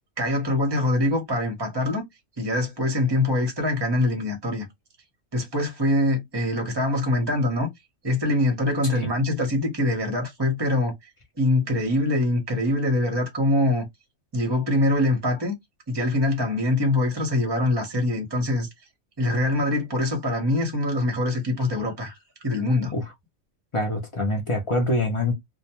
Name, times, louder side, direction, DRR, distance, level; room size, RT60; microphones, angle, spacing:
voice 1, 0.2-2.0 2.4-4.7 5.3-7.7 8.0-10.9 11.4-13.9 14.3-15.5 15.9-18.7 19.2-22.2 22.4-22.9, left 1 dB, 25° right, 0.7 m, -24 dB
voice 2, 23.7-25.3, left 1 dB, 50° left, 0.3 m, -24 dB
2.3 x 2.2 x 2.8 m
omnidirectional pair, 1.3 m